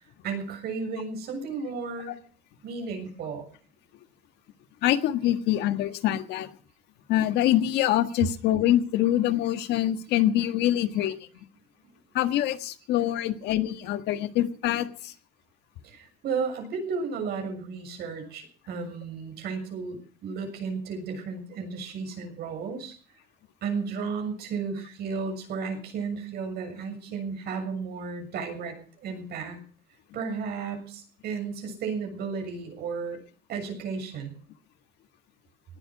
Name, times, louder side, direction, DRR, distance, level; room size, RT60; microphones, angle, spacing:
voice 1, 0.0-2.1 2.6-3.5 15.8-23.0 23.6-29.6 30.1-33.2 33.5-34.3, right 5 dB, 70° right, 4 dB, 7.0 m, -33 dB
voice 2, 4.8-6.5 7.1-11.4 12.1-15.1, left 12 dB, 85° left, 10 dB, 1.6 m, -25 dB
18.5 x 12.0 x 6.0 m, 0.43 s
cardioid pair, 110°, 17 cm